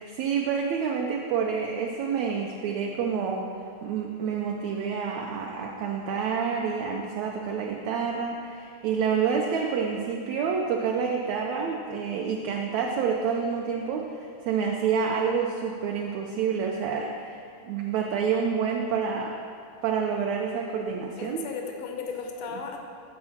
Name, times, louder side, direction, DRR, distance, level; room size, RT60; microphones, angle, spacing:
voice 1, 0.0-3.5 3.8-19.4 19.8-21.5, right 6 dB, 75° right, 0 dB, 1.7 m, -28 dB
voice 2, 21.2-22.8, left 5 dB, 90° left, 2 dB, 1.2 m, -35 dB
8.7 x 4.8 x 7.1 m, 2.3 s
omnidirectional pair, 3.4 m